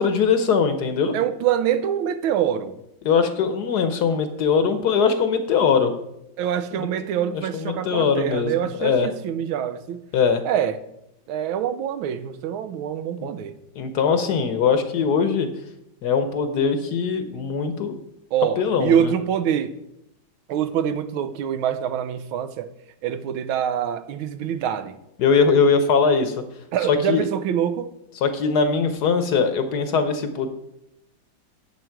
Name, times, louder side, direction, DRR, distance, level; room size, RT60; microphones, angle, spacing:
voice 1, 0.0-1.1 3.0-5.9 6.7-6.9 7.3-9.1 10.1-10.4 13.2-13.3 13.8-15.5 16.0-17.9 18.6-19.1 25.2-26.4 26.9-27.3 28.2-30.5, left 5 dB, 60° left, 1.2 m, -21 dB
voice 2, 1.1-2.8 6.4-10.0 10.4-10.8 11.3-13.5 18.3-19.7 20.5-22.7 23.0-25.0 26.7-27.9, right 9 dB, 85° right, 1.5 m, -25 dB
10.0 x 7.9 x 4.6 m
omnidirectional pair, 2.2 m